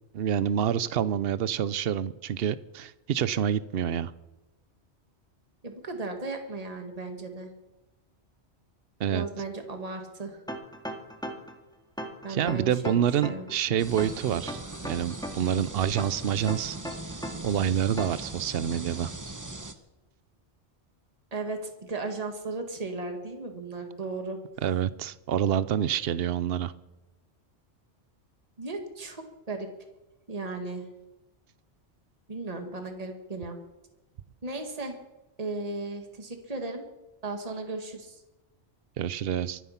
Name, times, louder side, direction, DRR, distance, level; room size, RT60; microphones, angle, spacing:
voice 1, 0.1-4.1 9.0-9.3 12.3-14.6 14.9-16.8 17.4-19.1 24.6-26.7 39.0-39.6, right 9 dB, 65° right, 16 dB, 0.9 m, -27 dB
voice 2, 5.6-7.5 9.1-10.4 12.2-13.5 21.3-24.4 28.6-29.7 30.3-30.9 32.3-33.6 34.4-35.0 35.4-36.8 37.2-38.2, right 3 dB, 35° right, 4 dB, 1.9 m, -36 dB
sound 1, 10.5-11.6 12.0-13.5 14.0-15.5 16.0-17.5 18.0-18.3, equal, 5° left, 2.0 m, -37 dB
sound 2, 13.8-19.7, right 2 dB, 15° right, 1.0 m, -40 dB
24.5 x 9.3 x 5.8 m, 1.0 s
omnidirectional pair, 1.2 m